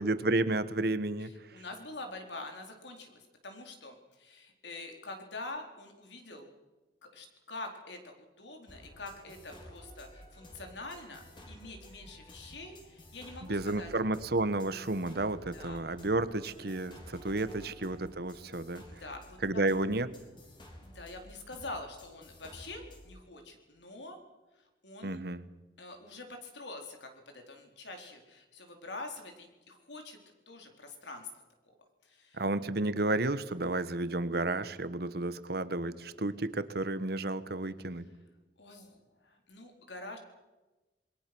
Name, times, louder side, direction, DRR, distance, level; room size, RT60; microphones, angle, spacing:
voice 1, 0.0-1.3 13.5-18.8 19.4-20.1 25.0-25.4 32.4-38.1, right 2 dB, 60° right, 14 dB, 1.3 m, -31 dB
voice 2, 1.2-6.5 7.0-13.9 15.5-15.8 17.1-17.6 18.9-19.6 20.8-24.2 24.6-25.2 25.8-30.2 30.5-31.3 32.0-32.4 38.6-40.2, left 2 dB, 80° left, 4 dB, 4.3 m, -46 dB
sound 1, 8.7-23.1, equal, 30° left, 4.3 m, -53 dB
27.5 x 22.0 x 6.2 m, 1.1 s
head